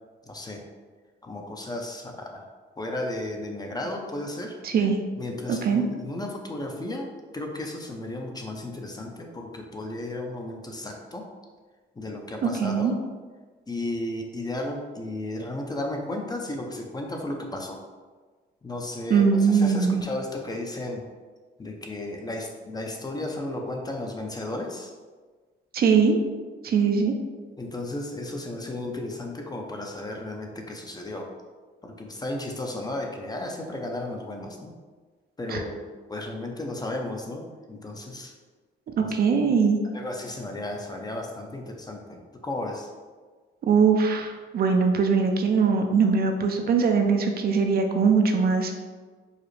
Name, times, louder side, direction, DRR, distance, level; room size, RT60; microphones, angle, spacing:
voice 1, 0.3-0.6 1.2-2.4 2.8-4.6 5.2-11.3 12.0-13.0 13.7-17.8 18.6-21.0 21.6-24.9 27.6-31.3 31.8-34.7 35.4-35.8 36.1-38.3 39.0-39.2 39.9-42.9, left 1 dB, 20° left, 1 dB, 0.5 m, -34 dB
voice 2, 4.6-5.0 5.5-5.8 12.6-12.9 19.1-20.0 25.7-26.2 26.6-27.1 35.5-35.6 39.0-39.8 43.7-48.8, right 5 dB, 50° right, 4 dB, 0.5 m, -21 dB
4.8 x 2.0 x 3.1 m, 1.4 s
cardioid pair, 90°, 20 cm